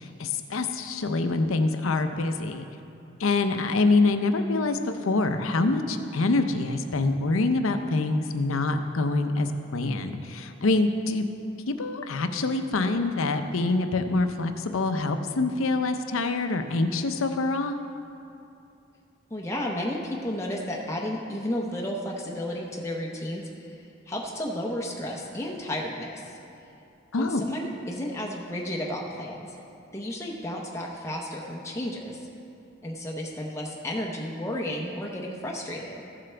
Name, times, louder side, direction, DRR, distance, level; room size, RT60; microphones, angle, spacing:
voice 1, 0.0-2.7 3.2-11.3 11.7-17.8 27.1-27.5, left 3 dB, 80° left, 7 dB, 0.6 m, -25 dB
voice 2, 19.3-26.4 27.2-29.6 29.9-32.3 32.8-36.0, left 1 dB, 15° left, -2 dB, 0.7 m, -33 dB
15.0 x 7.6 x 3.4 m, 2.6 s
head